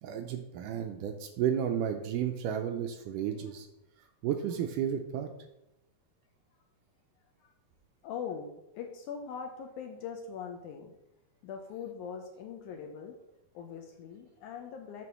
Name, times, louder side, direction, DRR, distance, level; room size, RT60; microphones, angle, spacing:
voice 1, 0.0-3.7 4.2-5.3, right 9 dB, 80° right, 5 dB, 2.0 m, -32 dB
voice 2, 8.0-10.9 11.4-13.2 13.5-15.0, left 7 dB, 75° left, 3 dB, 1.9 m, -41 dB
9.2 x 3.4 x 6.6 m, 0.87 s
omnidirectional pair, 4.1 m